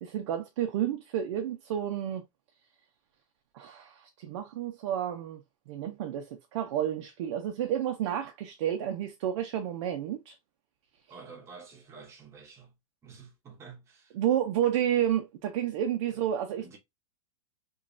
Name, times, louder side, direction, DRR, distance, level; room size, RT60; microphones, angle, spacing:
voice 1, 0.0-2.2 3.5-5.4 5.7-10.4 14.1-16.6, right 10 dB, 55° right, 0.4 m, -30 dB
voice 2, 11.1-12.7 13.0-14.1 16.6-16.8, right 5 dB, 15° right, 0.7 m, -49 dB
3.0 x 2.3 x 2.4 m
supercardioid pair, 165°, 18 cm